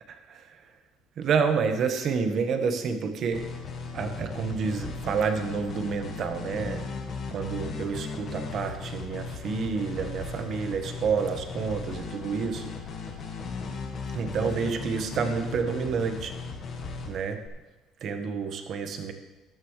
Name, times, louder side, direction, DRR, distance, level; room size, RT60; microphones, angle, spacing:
voice 1, 0.1-0.6 1.2-3.5 3.9-6.8 7.3-12.7 14.1-16.3 17.1-17.4 18.0-19.1, right 5 dB, 45° right, 7 dB, 1.3 m, -29 dB
sound 1, 3.3-17.5, left 4 dB, 40° left, 1.7 m, -37 dB
14.0 x 11.5 x 3.3 m, 1.1 s
cardioid pair, 145°, 0 cm